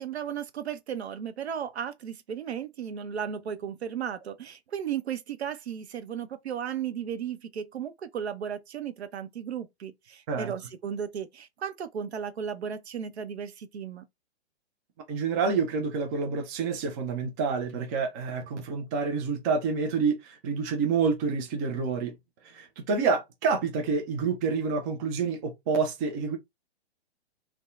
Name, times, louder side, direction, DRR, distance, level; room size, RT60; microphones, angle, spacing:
voice 1, 0.0-14.0, right 8 dB, 75° right, 0.6 m, -35 dB
voice 2, 15.1-22.2 22.4-26.4, right 5 dB, 20° right, 0.3 m, -28 dB
2.7 x 2.1 x 2.3 m
figure-of-eight pair, 120°, 33 cm